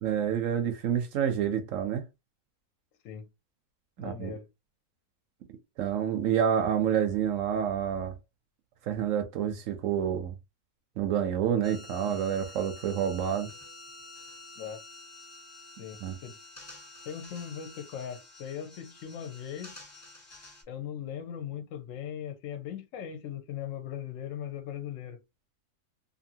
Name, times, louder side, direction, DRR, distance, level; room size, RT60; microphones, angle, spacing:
voice 1, 0.0-2.0 4.0-4.3 5.8-8.2 8.9-10.3 11.0-13.5 16.0-16.1, right 9 dB, 70° right, 0.8 m, -28 dB
voice 2, 4.0-4.5 14.6-14.8 15.8-16.4 17.0-19.8 20.7-25.2, left 9 dB, 65° left, 0.9 m, -39 dB
sound 1, 11.6-20.6, left 2 dB, 20° left, 1.0 m, -49 dB
2.7 x 2.6 x 2.7 m
omnidirectional pair, 1.7 m